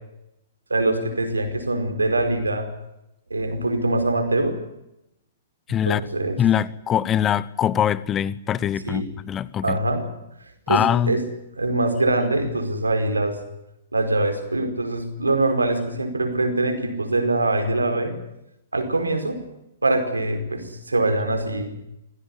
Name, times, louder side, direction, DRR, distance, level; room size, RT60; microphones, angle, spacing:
voice 1, 0.7-2.7 3.3-4.6 5.9-6.4 8.9-9.1 9.6-10.1 10.7-11.2 11.6-13.4 13.9-18.2 18.7-19.4 19.8-21.7, right 2 dB, 80° right, 4.8 m, -23 dB
voice 2, 5.7-6.0 6.4-9.8 10.7-11.2, left 10 dB, 20° left, 1.0 m, -22 dB
26.0 x 17.0 x 9.9 m
figure-of-eight pair, 115°, 0 cm